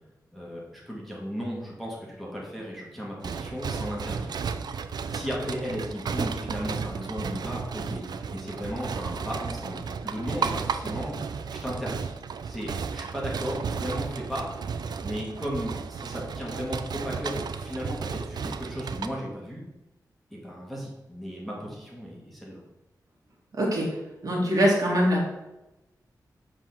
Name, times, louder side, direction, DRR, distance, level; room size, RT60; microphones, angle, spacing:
voice 1, 0.3-4.4 5.1-11.2 11.5-12.1 12.4-14.5 15.0-19.6 20.3-22.6, equal, ahead, -5 dB, 1.6 m, -35 dB
sound 1, 3.2-19.1, right 5 dB, 85° right, 0.4 m, -33 dB
voice 2, 23.5-23.9 24.2-25.3, equal, 60° right, -3 dB, 2.1 m, -23 dB
7.5 x 3.6 x 5.9 m, 0.99 s
wide cardioid pair, 175°, 7 cm